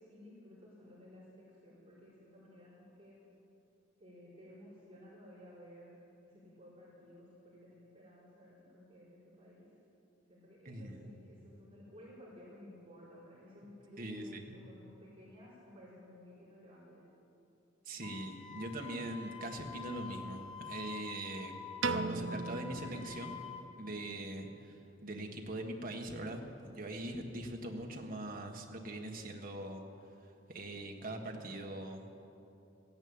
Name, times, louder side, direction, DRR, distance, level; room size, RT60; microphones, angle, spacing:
voice 1, 0.0-3.2 4.0-5.9 6.2-9.7 10.3-17.0, left 1 dB, 30° right, -9 dB, 5.0 m, -55 dB
voice 2, 10.6-11.1 14.0-14.4 17.8-21.6 21.9-23.4 23.8-32.1, right 1 dB, 45° right, 2 dB, 1.6 m, -42 dB
Wind instrument woodwind instrument, 18.0-23.7, left 6 dB, 30° left, 1.5 m, -48 dB
Piano, 21.8-24.1, right 4 dB, 80° right, 0.6 m, -38 dB
15.5 x 10.5 x 8.8 m, 2.8 s
head